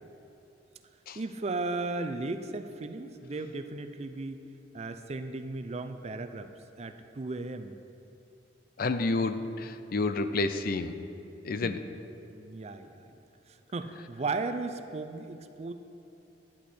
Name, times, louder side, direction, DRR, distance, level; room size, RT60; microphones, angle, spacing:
voice 1, 1.1-4.4 4.7-6.5 6.8-7.8 11.6-11.8 12.2-12.9 13.7-15.7, right 3 dB, 35° right, 9 dB, 0.5 m, -35 dB
voice 2, 8.8-11.0 11.4-11.8, left 3 dB, 55° left, 10 dB, 0.5 m, -29 dB
11.0 x 9.9 x 4.3 m, 2.8 s
head